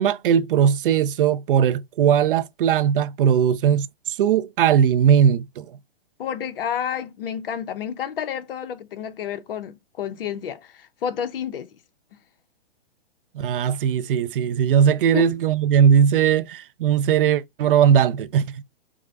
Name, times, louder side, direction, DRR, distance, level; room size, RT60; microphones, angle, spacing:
voice 1, 0.0-5.7 13.3-18.6, right 8 dB, 60° right, 0.4 m, -19 dB
voice 2, 6.2-11.7 15.1-15.3, left 8 dB, 60° left, 0.7 m, -30 dB
4.7 x 2.1 x 2.4 m
hypercardioid pair, 135°, 31 cm